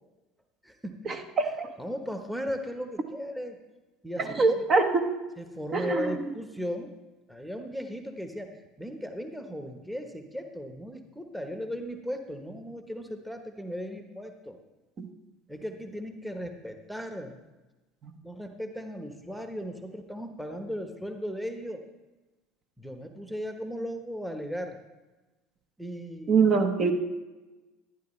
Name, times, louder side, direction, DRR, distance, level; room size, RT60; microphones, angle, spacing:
voice 1, 0.6-1.0 1.8-3.6 4.0-4.7 5.4-6.9 7.3-8.5 8.8-14.6 15.5-17.4 18.2-21.8 22.8-24.8 25.8-26.6, equal, 5° right, 5 dB, 1.1 m, -37 dB
voice 2, 1.4-1.7 4.2-5.0 5.7-6.2 15.0-15.1 18.0-18.1 26.3-26.9, right 4 dB, 40° right, 5 dB, 1.2 m, -24 dB
12.0 x 11.0 x 3.2 m, 1.1 s
hypercardioid pair, 70°, 0 cm